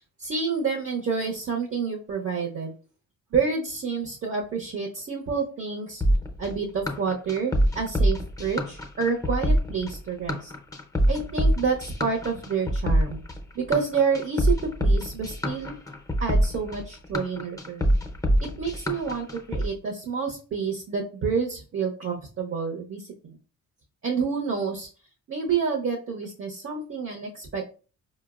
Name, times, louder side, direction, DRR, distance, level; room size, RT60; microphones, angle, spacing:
voice 1, 0.2-2.7 3.3-6.0 6.4-10.5 11.1-13.2 13.5-15.7 16.2-17.9 18.4-23.4 24.0-24.9 25.3-27.6, right 5 dB, 40° right, 1 dB, 0.7 m, -28 dB
sound 1, 6.0-19.7, equal, 10° left, 0.6 m, -24 dB
4.4 x 2.0 x 2.3 m, 0.37 s
supercardioid pair, 65°, 34 cm